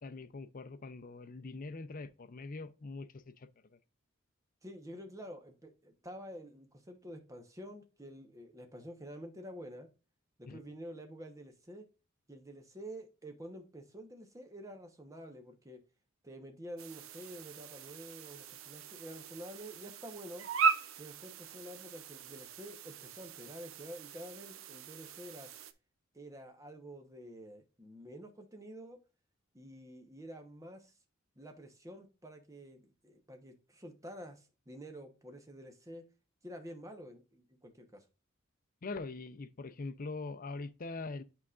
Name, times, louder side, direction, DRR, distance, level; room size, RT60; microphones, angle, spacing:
voice 1, 0.0-3.8 10.5-10.6 38.8-41.2, left 3 dB, 45° left, 0.5 m, -43 dB
voice 2, 4.6-9.9 10.4-11.9 12.3-15.8 16.2-20.5 21.0-25.5 26.1-29.0 29.5-30.9 31.4-36.0 36.4-38.0, equal, 15° right, 1.0 m, -49 dB
sound 1, 16.8-25.7, right 6 dB, 85° right, 0.6 m, -38 dB
8.3 x 4.8 x 2.4 m
head